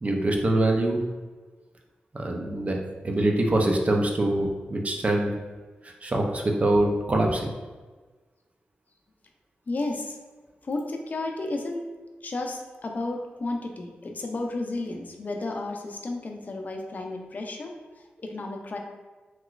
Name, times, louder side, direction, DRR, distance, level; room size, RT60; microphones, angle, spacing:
voice 1, 0.0-1.0 2.1-2.8 3.0-5.3 5.8-7.5, right 1 dB, 35° right, 1 dB, 0.5 m, -24 dB
voice 2, 9.7-10.2 10.6-11.8 12.2-17.8 18.2-18.8, left 2 dB, 45° left, 2 dB, 0.5 m, -32 dB
2.9 x 2.9 x 2.4 m, 1.3 s
cardioid pair, 70°, 4 cm